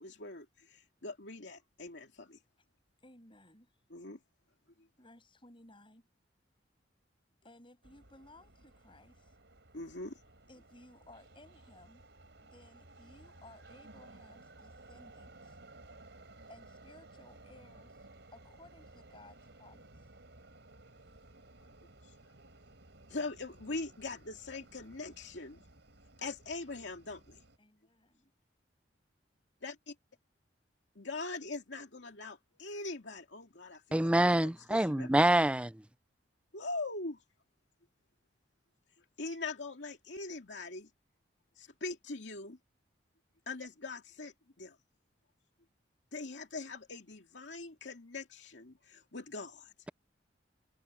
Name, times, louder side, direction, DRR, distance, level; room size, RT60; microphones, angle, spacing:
voice 1, 0.0-2.4 3.9-4.2 9.7-10.1 23.1-25.6 26.2-27.4 29.6-29.9 31.0-35.1 36.5-37.2 39.2-40.9 41.6-42.6 43.5-44.8 46.1-49.7, left 3 dB, 75° left, 2.4 m, -42 dB
voice 2, 3.0-3.8 5.0-6.1 7.4-9.4 10.5-12.0 12.4-15.6 16.5-18.1 18.3-20.0 27.6-28.3, left 2 dB, 30° left, 7.7 m, -59 dB
sound 1, 7.8-27.6, right 2 dB, 70° right, 4.5 m, -57 dB
voice 3, 33.9-35.7, right 1 dB, 5° right, 0.4 m, -26 dB
head